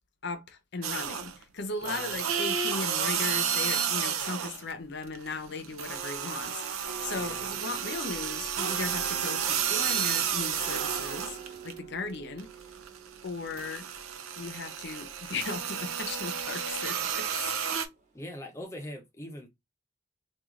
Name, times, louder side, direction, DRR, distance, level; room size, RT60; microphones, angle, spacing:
voice 1, 0.2-11.4 11.6-12.5 13.2-13.9 14.4-17.5, left 4 dB, 55° left, 0.7 m, -37 dB
sound 1, 0.8-1.4 1.8-4.7 5.0-11.8 12.2-17.9, right 8 dB, 90° right, 0.6 m, -31 dB
voice 2, 1.8-2.2 7.1-7.5 18.1-19.5, left 1 dB, 15° left, 0.6 m, -42 dB
sound 2, 6.8-16.1 16.4-17.5 17.8-18.2 18.5-18.6, right 7 dB, 40° right, 1.1 m, -46 dB
3.1 x 2.4 x 3.6 m
head